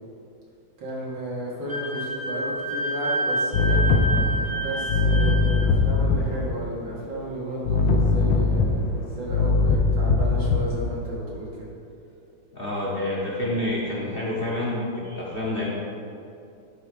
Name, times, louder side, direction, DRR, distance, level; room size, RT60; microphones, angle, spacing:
voice 1, 0.8-3.8 4.6-11.7, right 1 dB, 75° right, -6 dB, 2.6 m, -33 dB
Wind instrument woodwind instrument, 1.7-5.6, right 1 dB, 20° right, 0.5 m, -28 dB
sound 1, 3.5-6.5 7.6-10.9, left 3 dB, 75° left, 1.3 m, -21 dB
voice 2, 12.5-15.7, left 1 dB, 35° left, -6 dB, 1.1 m, -28 dB
10.5 x 3.6 x 5.1 m, 2.6 s
omnidirectional pair, 2.2 m